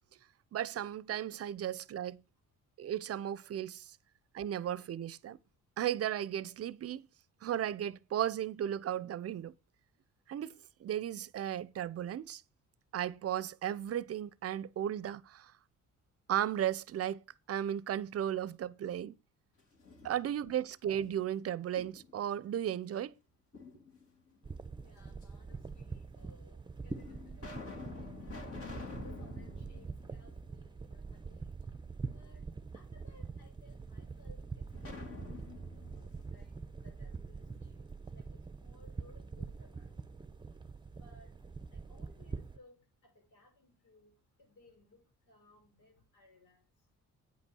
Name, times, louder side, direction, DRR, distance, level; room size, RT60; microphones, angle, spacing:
voice 1, 0.5-2.2 2.8-4.0 4.3-5.4 5.8-7.1 7.4-9.5 10.3-12.4 12.9-15.5 16.3-17.2 17.5-19.2 20.0-23.1, right 10 dB, 50° right, 0.6 m, -35 dB
sound 1, 19.6-20.6 21.0-22.3 23.5-24.3 25.2-25.3 26.2-26.3 26.9-31.0 31.3-31.4 34.7-37.5, left 4 dB, 50° left, 2.8 m, -49 dB
sound 2, 24.4-42.6, right 4 dB, 15° right, 0.8 m, -45 dB
voice 2, 24.8-27.9 28.8-31.6 32.1-32.4 32.7-35.5 35.7-40.0 41.0-41.3 41.7-44.1 44.4-46.6, left 2 dB, 90° left, 6.1 m, -63 dB
9.2 x 5.3 x 6.1 m
cardioid pair, 90°, 30 cm